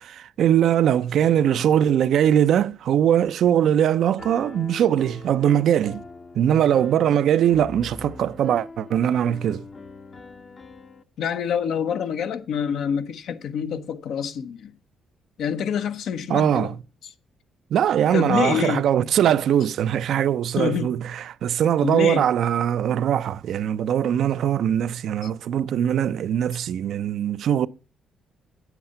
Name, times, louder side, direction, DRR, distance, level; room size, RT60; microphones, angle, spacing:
voice 1, 0.0-6.0 6.3-9.6 16.3-16.8 17.7-27.7, right 10 dB, 70° right, 0.4 m, -21 dB
Piano, 4.2-11.0, left 3 dB, 35° left, 0.7 m, -42 dB
voice 2, 11.2-14.7 15.4-16.7 18.1-18.9 20.6-20.9 21.8-22.2, left 7 dB, 75° left, 0.8 m, -26 dB
8.5 x 8.1 x 5.6 m
cardioid pair, 90°, 0 cm